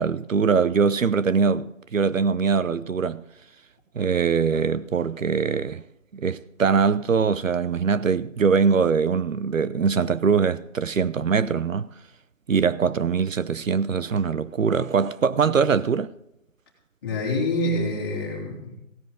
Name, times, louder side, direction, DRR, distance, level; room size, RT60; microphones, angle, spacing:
voice 1, 0.0-3.2 3.9-5.8 6.1-11.9 12.5-16.1, right 6 dB, 80° right, 0.8 m, -22 dB
voice 2, 17.0-18.8, left 1 dB, 15° left, 2.9 m, -26 dB
17.0 x 10.0 x 3.8 m
figure-of-eight pair, 165°, 39 cm